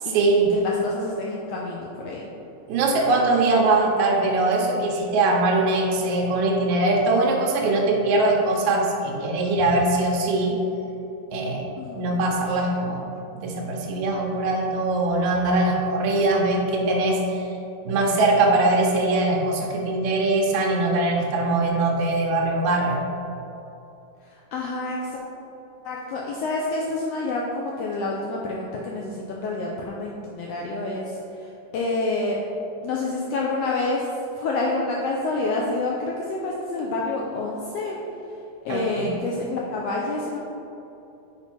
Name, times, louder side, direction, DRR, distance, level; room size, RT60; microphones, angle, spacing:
voice 1, 0.0-0.5 2.7-10.6 11.3-11.6 12.0-13.0 13.3-17.5 17.8-23.0 38.7-39.1, right 2 dB, 85° right, -1 dB, 2.1 m, -22 dB
voice 2, 0.5-2.3 11.8-12.2 24.2-25.2 25.8-32.4 32.8-38.0 38.6-40.4, left 2 dB, 85° left, -2 dB, 1.4 m, -28 dB
5.8 x 4.3 x 4.5 m, 2.9 s
omnidirectional pair, 3.3 m